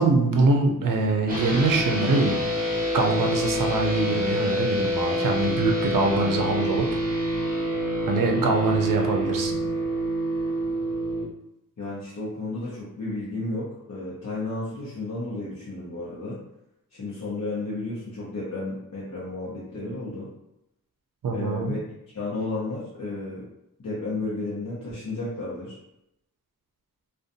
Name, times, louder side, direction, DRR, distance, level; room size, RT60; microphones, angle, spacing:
voice 1, 0.0-2.4 2.9-6.9 8.1-9.5 21.2-21.7, right 3 dB, 65° right, 2 dB, 0.5 m, -23 dB
sound 1, 1.3-11.2, equal, 25° right, 0.9 m, -27 dB
voice 2, 11.8-16.4 16.9-20.3 21.3-21.8 22.1-23.5 23.8-25.8, left 2 dB, 55° left, -8 dB, 0.7 m, -32 dB
2.5 x 2.2 x 2.6 m, 0.85 s
wide cardioid pair, 100°, 35 cm